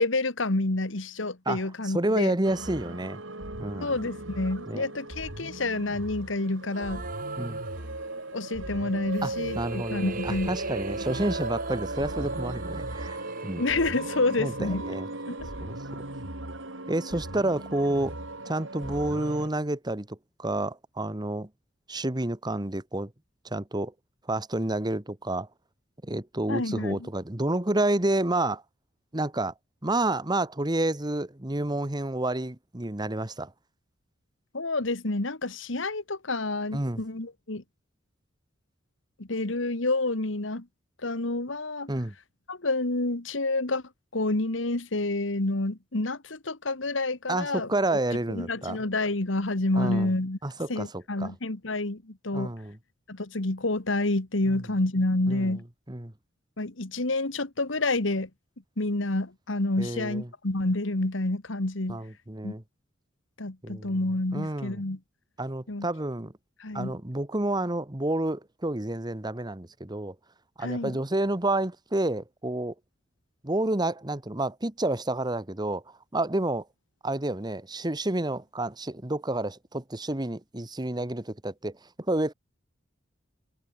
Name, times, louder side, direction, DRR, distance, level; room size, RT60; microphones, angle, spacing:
voice 1, 0.0-2.3 3.8-7.0 8.3-10.5 13.6-14.8 15.3-15.5 26.5-27.0 34.5-37.6 39.2-40.7 41.0-41.9 42.5-43.8 44.1-48.0 48.3-50.4 50.7-52.5 53.1-55.6 56.6-58.3 58.8-62.0 62.4-62.6 63.4-65.0 65.7-65.9 66.6-66.9 70.6-71.0, left 2 dB, 70° left, 1.8 m, -28 dB
voice 2, 1.5-3.2 3.6-3.9 4.7-4.8 7.4-7.6 9.2-13.2 13.4-13.6 14.4-15.1 15.6-16.0 16.9-18.2 18.4-21.5 21.9-23.1 23.4-23.9 24.3-25.5 26.0-28.6 29.1-29.5 29.8-33.5 36.7-37.0 41.9-42.1 47.3-48.8 49.8-50.1 50.4-51.3 52.3-52.8 54.5-54.6 55.3-55.5 55.9-56.1 59.8-60.3 61.9-62.6 63.6-63.9 64.3-64.8 65.4-66.3 66.7-70.1 70.6-72.7 73.4-75.8 76.1-76.7 77.0-82.3, right 1 dB, 20° right, 1.3 m, -29 dB
sound 1, 2.4-19.5, right 2 dB, 70° right, 5.4 m, -37 dB
sound 2, 6.7-8.4 9.1-15.2, right 3 dB, 45° right, 3.9 m, -40 dB
head